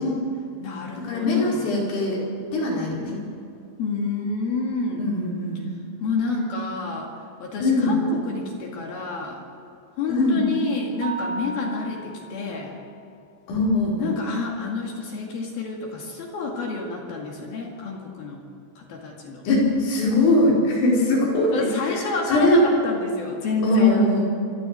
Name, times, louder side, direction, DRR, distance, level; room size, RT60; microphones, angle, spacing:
voice 1, 0.0-1.7 3.8-5.1 6.0-9.4 10.0-12.7 14.0-18.4 18.8-19.5 21.5-24.1, left 3 dB, 55° left, 0 dB, 3.6 m, -29 dB
voice 2, 1.1-2.2 2.5-3.2 5.0-5.7 7.6-8.0 10.1-10.5 13.5-14.1 19.5-22.0 22.3-22.6 23.6-24.2, left 2 dB, 85° left, -4 dB, 7.5 m, -21 dB
Mallet percussion, 11.0-12.8, right 3 dB, 40° right, 2.8 m, -35 dB
26.0 x 13.5 x 7.6 m, 2.6 s
omnidirectional pair, 5.6 m